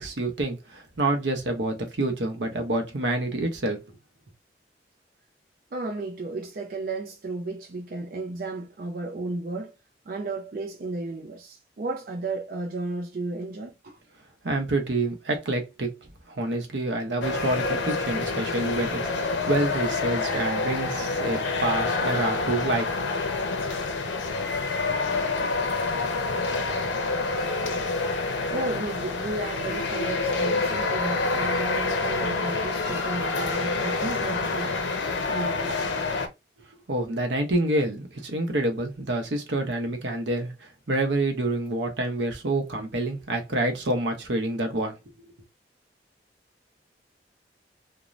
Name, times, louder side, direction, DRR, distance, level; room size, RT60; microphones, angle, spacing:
voice 1, 0.0-3.8 14.4-15.9 16.4-22.9 36.9-44.9, right 2 dB, 75° right, 0.7 m, -27 dB
voice 2, 5.7-9.7 10.1-14.0 28.5-34.7 35.0-36.0, right 2 dB, 50° right, 0.4 m, -33 dB
sound 1, 17.2-36.3, left 3 dB, 85° left, 0.6 m, -27 dB
2.5 x 2.1 x 3.1 m
head